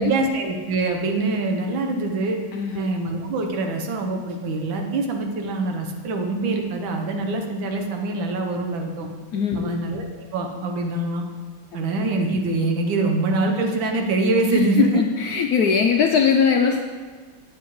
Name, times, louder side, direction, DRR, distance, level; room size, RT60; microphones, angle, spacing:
voice 1, 0.0-2.4 2.7-9.1 9.5-11.2 11.7-15.0, right 3 dB, 80° right, 3 dB, 1.7 m, -24 dB
voice 2, 2.5-2.9 9.3-9.8 14.5-16.8, left 6 dB, 80° left, 3 dB, 0.8 m, -20 dB
9.2 x 7.8 x 3.1 m, 1.5 s
omnidirectional pair, 2.1 m